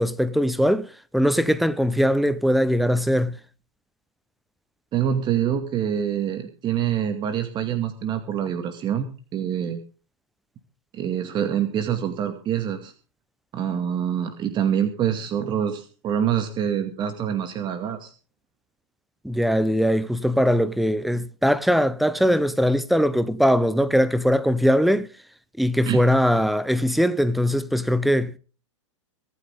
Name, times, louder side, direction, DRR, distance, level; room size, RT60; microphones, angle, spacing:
voice 1, 0.0-3.4 19.2-25.1 25.6-28.4, equal, ahead, 1.1 m, -21 dB
voice 2, 4.9-9.1 9.3-9.8 10.9-12.9 13.5-18.1 25.9-26.0, right 9 dB, 30° right, 2.2 m, -25 dB
24.5 x 9.5 x 3.7 m
hypercardioid pair, 105°, 16 cm